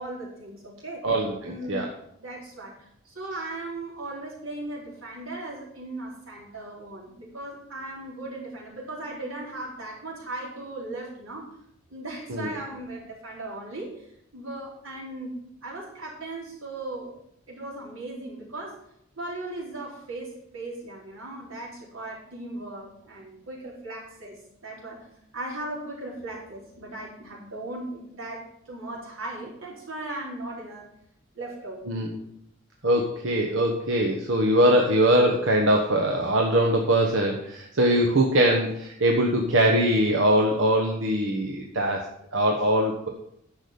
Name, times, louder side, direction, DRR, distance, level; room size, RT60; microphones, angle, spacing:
voice 1, 0.0-1.0 1.4-1.9 2.2-11.5 11.9-14.0 14.3-17.1 17.5-18.8 19.2-25.1 25.3-30.9 31.3-31.8, right 2 dB, 85° right, -3 dB, 4.2 m, -37 dB
voice 2, 1.0-1.9 12.3-12.5 31.9-32.2 32.8-43.1, right 1 dB, 65° right, 1 dB, 1.3 m, -22 dB
10.5 x 6.3 x 6.9 m, 0.73 s
head